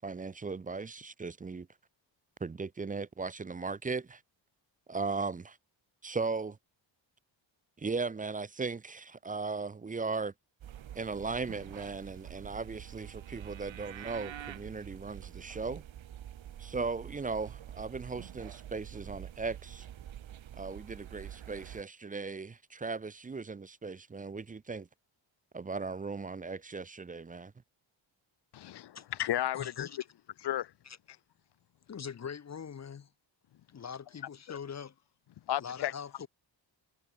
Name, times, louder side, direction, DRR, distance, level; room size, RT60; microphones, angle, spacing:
voice 1, 0.0-1.7 2.4-4.2 4.9-5.6 6.0-6.6 7.8-10.3 10.9-15.8 16.6-19.9 20.6-24.9 25.5-27.5, right 4 dB, 20° right, 0.5 m, -37 dB
sound 1, 10.6-21.8, right 11 dB, 80° right, 5.3 m, -46 dB
voice 2, 28.5-29.9 30.4-30.7 34.5-34.6 35.5-35.9, left 12 dB, 60° left, 1.0 m, -33 dB
voice 3, 29.5-30.0 30.8-31.0 31.9-33.1 33.7-34.9 35.6-36.3, left 7 dB, 35° left, 1.2 m, -42 dB
wide cardioid pair, 175°, 46 cm